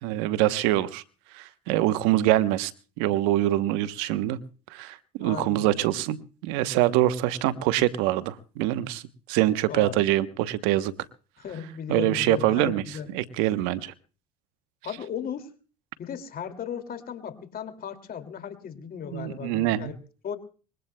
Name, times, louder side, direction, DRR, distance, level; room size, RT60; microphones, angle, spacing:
voice 1, 0.0-1.0 1.3-2.7 3.0-4.4 4.7-9.0 9.3-10.9 11.9-12.8 13.1-13.9 19.1-19.9, right 14 dB, 80° right, 13 dB, 1.0 m, -24 dB
voice 2, 5.2-5.7 9.7-10.1 11.4-13.1 14.8-15.5 16.0-20.0 20.2-20.4, left 8 dB, 45° left, 9 dB, 2.4 m, -36 dB
24.5 x 21.0 x 2.2 m, 0.38 s
supercardioid pair, 85°, 20 cm